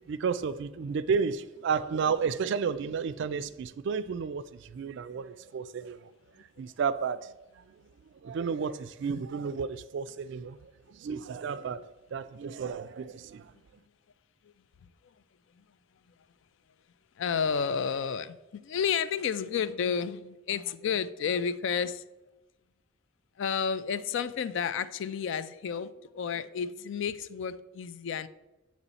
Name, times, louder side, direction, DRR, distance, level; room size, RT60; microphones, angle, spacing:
voice 1, 0.0-6.1 6.4-7.6 8.2-11.8 12.1-13.5, right 6 dB, 60° right, 0.3 m, -32 dB
voice 2, 17.2-22.0 23.4-28.3, left 7 dB, 60° left, 0.3 m, -31 dB
8.2 x 3.1 x 4.1 m
head